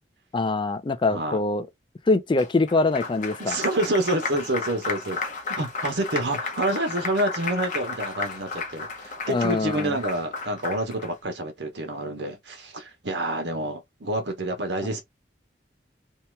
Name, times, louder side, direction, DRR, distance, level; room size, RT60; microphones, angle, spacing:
voice 1, 0.3-1.7 2.1-3.6 9.3-10.0, left 3 dB, 30° left, 0.3 m, -23 dB
voice 2, 1.1-1.4 3.4-5.2 5.5-15.0, right 1 dB, 80° right, 1.0 m, -28 dB
Applause, 2.4-11.1, left 4 dB, 45° left, 0.8 m, -33 dB
2.8 x 2.3 x 3.1 m
head